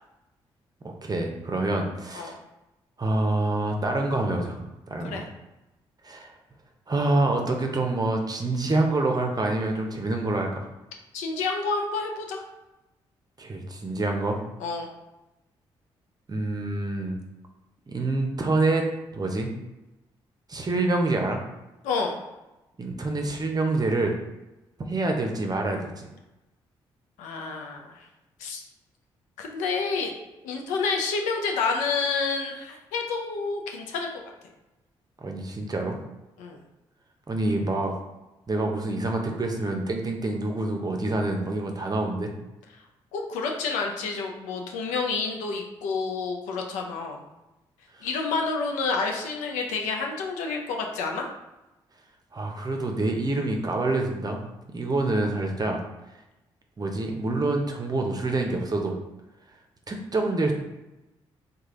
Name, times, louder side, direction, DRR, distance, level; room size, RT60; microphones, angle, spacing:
voice 1, 0.8-2.3 3.0-4.6 4.9-5.2 6.0-6.3 6.9-10.7 13.4-14.4 16.3-17.2 17.9-18.8 19.2-19.5 20.5-21.4 22.8-24.2 24.9-26.1 35.2-36.0 37.3-37.9 38.5-42.3 48.0-48.1 52.3-55.8 56.8-58.9 59.9-60.5, right 2 dB, 30° right, 2 dB, 0.7 m, -26 dB
voice 2, 11.1-12.4 14.6-14.9 21.8-22.2 27.2-28.0 28.4-28.6 29.4-30.1 30.4-34.1 36.4-36.6 43.1-47.2 48.0-51.3, left 4 dB, 80° left, 2 dB, 0.5 m, -29 dB
3.2 x 2.4 x 3.7 m, 1.0 s
hypercardioid pair, 45°, 13 cm